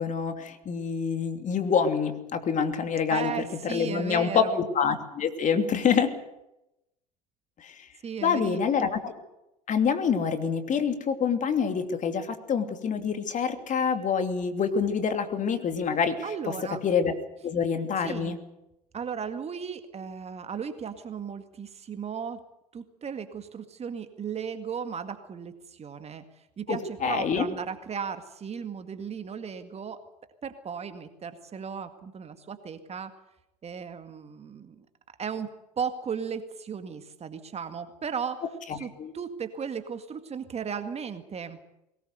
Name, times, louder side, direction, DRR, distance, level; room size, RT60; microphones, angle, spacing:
voice 1, 0.0-3.3 3.6-4.5 4.7-6.1 7.6-7.9 8.2-9.1 9.7-16.2 16.4-16.5 16.8-17.1 17.4-18.4 26.7-27.4 38.7-39.1, left 6 dB, 35° left, 7 dB, 2.8 m, -26 dB
voice 2, 3.1-4.7 8.0-8.6 16.2-16.8 18.0-18.4 18.9-22.4 22.7-30.0 30.4-33.1 33.6-34.9 35.2-35.5 35.8-38.4 38.7-41.6, right 6 dB, 30° right, 9 dB, 2.0 m, -36 dB
21.5 x 19.0 x 8.1 m, 0.89 s
hypercardioid pair, 75°, 21 cm